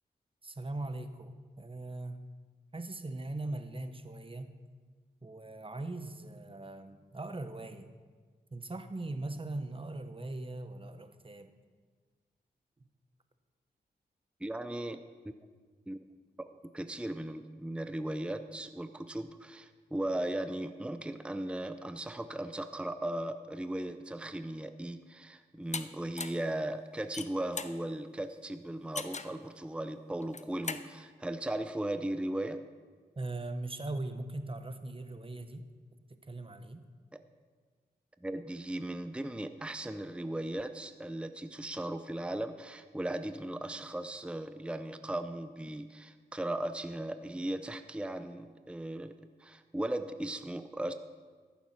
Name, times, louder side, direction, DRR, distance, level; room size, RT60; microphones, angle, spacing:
voice 1, 0.4-2.2 2.7-4.6 5.2-7.9 8.5-11.5 33.2-35.7 36.1-36.8, right 2 dB, 30° right, 9 dB, 1.2 m, -40 dB
voice 2, 14.4-15.0 15.9-16.0 16.4-16.5 16.7-32.6 37.1-37.2 38.2-50.9, right 1 dB, 5° right, 10 dB, 0.7 m, -37 dB
sound 1, 25.7-25.8 26.2-26.5 27.0-27.8 29.0-29.4 30.2-30.9, left 4 dB, 40° left, 0.8 m, -38 dB
14.0 x 7.1 x 6.0 m, 1.5 s
cardioid pair, 40°, 18 cm